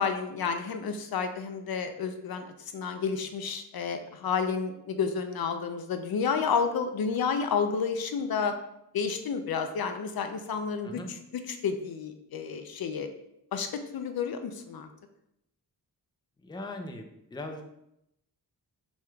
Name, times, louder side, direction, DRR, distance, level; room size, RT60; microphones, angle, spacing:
voice 1, 0.0-2.5 2.7-8.6 8.9-11.0 11.5-13.1 13.5-14.9, left 6 dB, 65° left, 7 dB, 0.5 m, -30 dB
voice 2, 16.4-17.6, left 2 dB, 10° left, 4 dB, 0.5 m, -39 dB
6.1 x 3.6 x 2.3 m, 0.80 s
wide cardioid pair, 110°, 40 cm